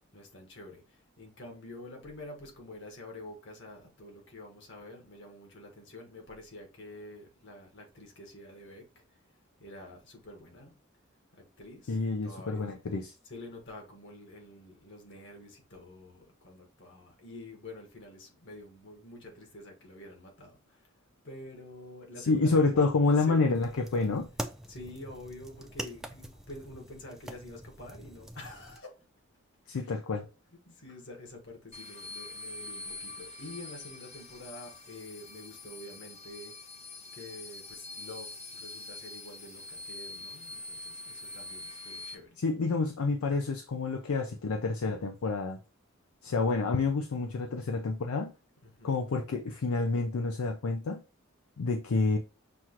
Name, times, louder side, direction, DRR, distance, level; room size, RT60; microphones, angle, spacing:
voice 1, 0.0-9.2 9.6-10.8 11.3-12.8 13.2-21.0 21.2-23.4 24.7-29.0 29.7-30.0 30.7-36.5 37.1-42.4 48.6-49.0, left 1 dB, 60° left, 1.5 m, -48 dB
voice 2, 11.9-13.1 22.3-24.3 29.7-30.3 42.4-45.6 46.2-48.3 48.8-51.0 51.6-52.2, left 3 dB, 80° left, 0.5 m, -28 dB
sound 1, 23.5-28.8, equal, ahead, 0.4 m, -44 dB
sound 2, 31.7-42.1, left 2 dB, 30° left, 0.7 m, -44 dB
5.9 x 2.5 x 2.9 m
head